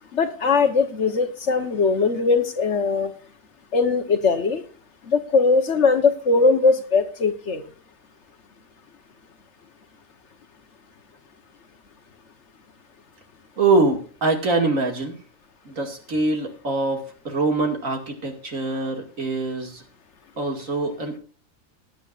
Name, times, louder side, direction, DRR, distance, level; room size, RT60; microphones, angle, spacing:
voice 1, 0.1-3.1 3.7-4.6 5.1-7.7, left 4 dB, 60° left, 8 dB, 1.5 m, -20 dB
voice 2, 13.6-15.2 15.6-19.8 20.4-21.2, right 3 dB, 80° right, 4 dB, 2.8 m, -24 dB
19.5 x 9.2 x 2.5 m, 0.40 s
omnidirectional pair, 1.4 m